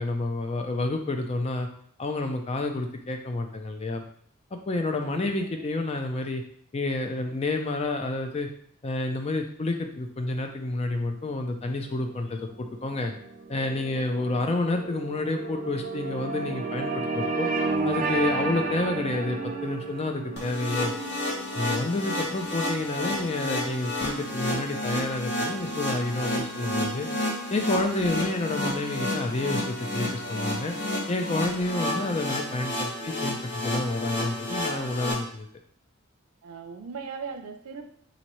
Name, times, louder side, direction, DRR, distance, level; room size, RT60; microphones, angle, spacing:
voice 1, 0.0-1.7 2.0-4.0 4.7-6.4 6.7-8.5 8.8-13.1 13.5-17.5 17.8-20.9 21.5-27.1 27.5-30.7 31.1-35.5, left 2 dB, 30° left, 4 dB, 0.4 m, -29 dB
voice 2, 5.0-5.7 21.8-22.4 32.0-32.1 33.0-33.2 36.4-37.9, right 5 dB, 90° right, 6 dB, 0.5 m, -40 dB
sound 1, 11.9-24.5, right 3 dB, 40° right, 0.5 m, -33 dB
sound 2, 20.4-35.1, left 1 dB, 50° left, 1.1 m, -31 dB
4.1 x 2.7 x 3.0 m, 0.63 s
head